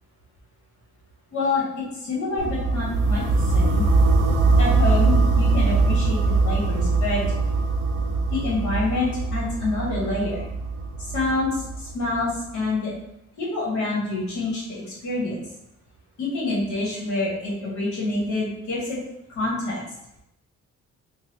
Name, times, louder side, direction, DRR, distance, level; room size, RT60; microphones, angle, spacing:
voice 1, 1.3-3.8 4.6-7.2 8.3-10.4 11.0-12.9 13.4-15.3 16.2-19.0 19.3-19.8, left 2 dB, 70° left, -4 dB, 1.5 m, -27 dB
sound 1, 2.4-12.3, right 3 dB, 80° right, 0.6 m, -22 dB
4.0 x 2.3 x 2.8 m, 0.84 s
cardioid pair, 90°, 30 cm